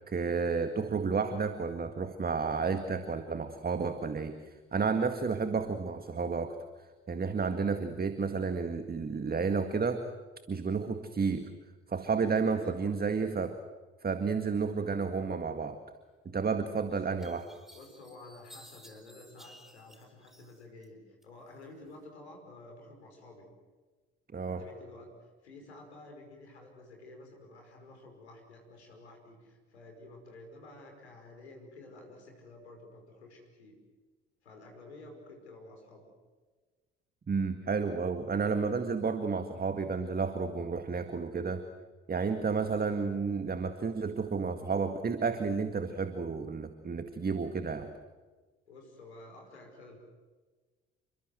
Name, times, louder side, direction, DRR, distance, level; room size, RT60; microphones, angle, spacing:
voice 1, 0.1-6.6 7.1-10.1 10.5-11.5 11.9-13.6 14.0-15.8 16.3-17.5 24.3-24.6 37.3-41.7 42.1-47.9, right 5 dB, 30° right, 9 dB, 1.9 m, -31 dB
voice 2, 12.5-13.0 16.8-17.0 17.7-23.5 24.4-33.8 34.4-36.1 48.7-50.0, left 2 dB, 85° left, 3 dB, 5.4 m, -51 dB
sound 1, 16.5-16.6 17.2-20.9 21.2-22.0, equal, ahead, 4.4 m, -56 dB
29.0 x 23.0 x 7.8 m, 1.3 s
figure-of-eight pair, 50°, 32 cm